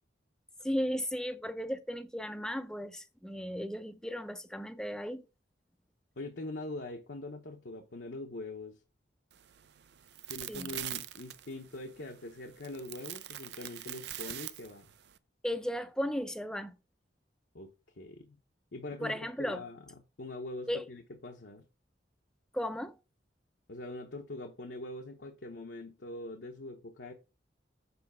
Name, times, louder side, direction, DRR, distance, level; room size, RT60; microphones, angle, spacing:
voice 1, 0.6-5.2 10.5-10.7 15.4-16.8 19.0-19.6 20.7-20.9 22.5-22.9, equal, 5° left, 0.5 m, -35 dB
voice 2, 6.2-8.8 10.3-14.9 17.5-18.4 18.7-19.8 20.2-21.6 23.7-27.1, left 2 dB, 70° left, 0.9 m, -43 dB
sound 1, 9.3-15.2, right 13 dB, 65° right, 0.5 m, -44 dB
7.0 x 4.1 x 5.4 m
head